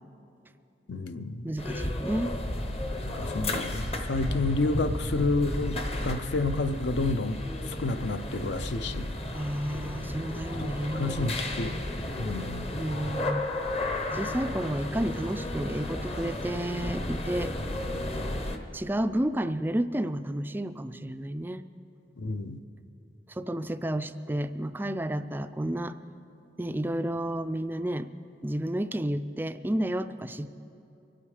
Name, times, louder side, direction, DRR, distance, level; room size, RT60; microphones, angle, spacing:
voice 1, 0.9-1.5 3.0-7.4 7.7-9.1 10.6-11.8 12.2-12.7 22.2-22.6, left 3 dB, 65° left, 11 dB, 0.6 m, -30 dB
voice 2, 1.4-2.3 9.3-11.4 12.8-13.5 14.1-17.5 18.7-21.6 23.3-26.0 26.6-28.1 28.4-30.6, right 1 dB, 10° right, 10 dB, 0.3 m, -31 dB
sound 1, 1.6-18.6, left 1 dB, 35° left, 0.8 m, -33 dB
25.0 x 8.8 x 4.9 m, 2.7 s
head